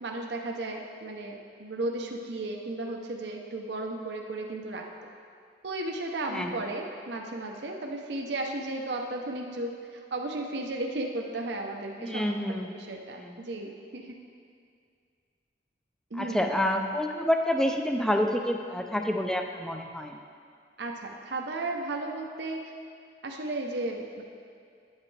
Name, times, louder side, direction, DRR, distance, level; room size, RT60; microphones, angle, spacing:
voice 1, 0.0-4.9 5.6-14.2 16.1-16.5 20.8-22.7 23.2-24.2, right 2 dB, 65° right, 1 dB, 0.7 m, -34 dB
voice 2, 12.0-12.7 13.2-13.4 16.2-20.2, left 1 dB, 5° left, 4 dB, 0.4 m, -28 dB
10.0 x 7.4 x 3.3 m, 2.3 s
head